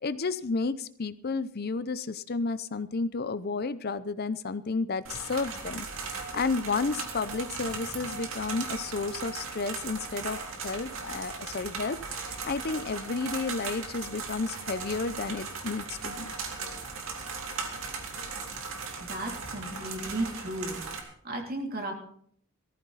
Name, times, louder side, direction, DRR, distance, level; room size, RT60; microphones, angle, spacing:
voice 1, 0.0-10.4 10.6-16.3, left 4 dB, 45° left, 14 dB, 0.6 m, -32 dB
sound 1, 5.1-21.0, right 4 dB, 65° right, 2.8 m, -38 dB
voice 2, 19.0-20.8 21.2-21.9, right 1 dB, 45° right, 2 dB, 3.0 m, -34 dB
18.0 x 14.5 x 4.1 m, 0.64 s
head